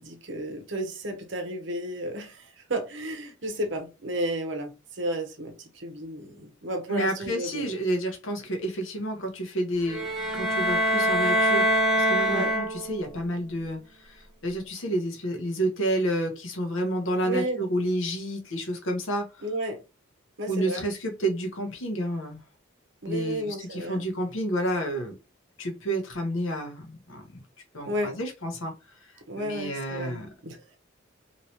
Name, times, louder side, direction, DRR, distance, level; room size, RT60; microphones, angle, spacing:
voice 1, 0.0-7.7 12.3-12.5 17.2-17.6 19.4-19.8 20.4-20.8 23.0-24.0 27.9-28.2 29.3-30.8, right 1 dB, 65° right, 0.9 m, -32 dB
voice 2, 6.9-10.1 10.3-19.3 20.5-22.4 23.1-25.2 25.6-27.4 27.7-28.7 29.4-30.3, right 1 dB, 80° left, 0.9 m, -30 dB
sound 1, 9.9-13.1, equal, ahead, 0.6 m, -24 dB
3.0 x 2.8 x 2.8 m
head